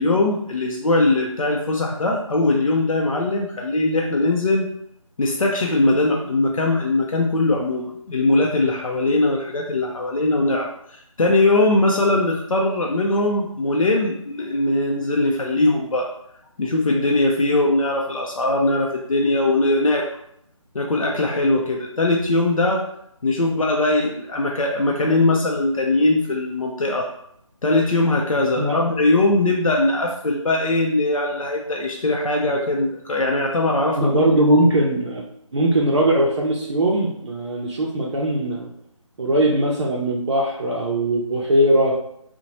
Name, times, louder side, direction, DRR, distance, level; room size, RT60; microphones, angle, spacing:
voice 1, 0.0-4.7 5.2-16.1 16.6-20.1 20.7-22.9 23.2-27.1 27.6-34.4, left 2 dB, 85° left, 0 dB, 0.5 m, -20 dB
voice 2, 34.0-35.2 35.5-38.7 39.2-41.9, right 1 dB, 60° right, -3 dB, 0.5 m, -20 dB
2.8 x 2.1 x 2.9 m, 0.73 s
figure-of-eight pair, 155°, 17 cm